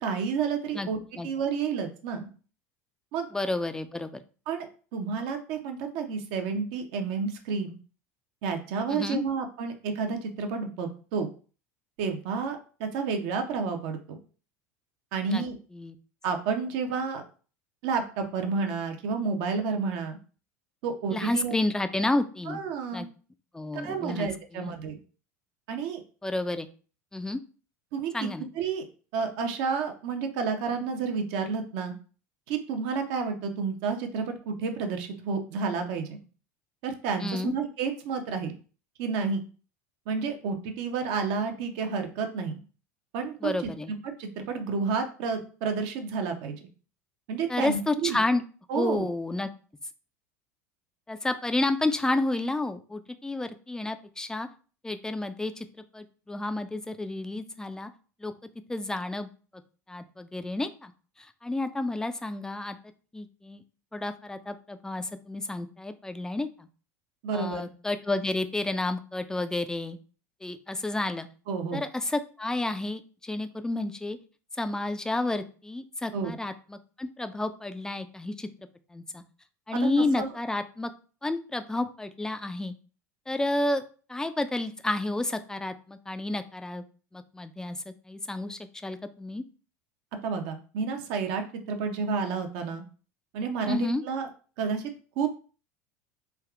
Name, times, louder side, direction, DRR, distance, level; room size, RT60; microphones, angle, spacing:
voice 1, 0.0-1.0 1.2-2.3 3.1-3.3 4.5-4.7 4.9-7.8 8.4-11.3 12.0-14.2 15.1-15.6 16.2-17.2 17.8-20.2 20.8-21.5 22.5-23.1 23.7-25.0 25.7-26.0 27.9-28.3 28.6-28.8 29.1-31.9 32.5-36.2 36.8-38.5 39.0-39.4 40.1-42.6 43.1-43.7 44.0-46.7 47.3-48.2 48.7-49.1 67.2-67.7 71.5-71.8 76.1-76.4 79.7-79.9 80.2-80.3 90.2-92.8 93.3-94.3 94.6-95.3, right 5 dB, 60° right, 5 dB, 0.6 m, -30 dB
voice 2, 3.3-4.2 8.9-9.2 15.3-15.4 15.7-16.0 21.1-22.6 22.9-23.1 23.5-24.8 26.2-26.7 27.1-27.4 28.1-28.5 37.2-37.5 43.4-43.9 47.5-48.4 48.7-49.5 51.1-54.5 54.8-57.9 58.2-58.3 58.7-59.3 59.9-60.9 61.2-62.8 63.1-63.6 63.9-66.7 67.3-70.0 70.4-71.3 71.7-74.2 74.6-78.5 78.9-79.2 79.7-80.9 81.2-82.7 83.3-83.8 84.1-86.8 87.1-89.4 93.7-94.0, left 2 dB, 5° left, 10 dB, 0.3 m, -30 dB
3.4 x 2.3 x 2.4 m, 0.38 s
hypercardioid pair, 75°, 9 cm